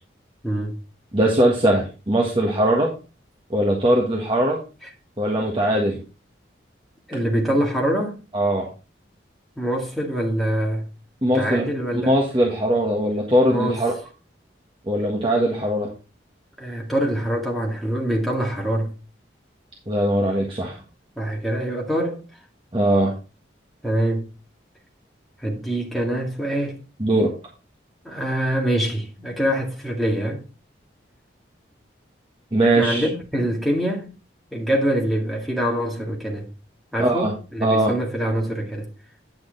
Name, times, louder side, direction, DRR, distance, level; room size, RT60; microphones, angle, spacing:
voice 1, 0.4-0.8 4.8-4.9 7.1-8.2 9.6-10.9 11.3-12.2 13.5-13.8 16.6-18.9 21.2-22.2 23.8-24.3 25.4-26.8 28.0-30.4 32.8-34.1 34.5-36.5 36.9-38.9, right 1 dB, ahead, 2.0 m, -24 dB
voice 2, 1.1-2.9 3.5-4.6 5.2-6.0 8.3-8.7 11.2-11.6 12.1-13.9 14.9-15.9 19.9-20.8 22.7-23.1 27.0-27.3 32.5-33.1 37.0-37.3 37.6-37.9, right 1 dB, 25° right, 1.5 m, -20 dB
9.7 x 6.2 x 3.9 m
head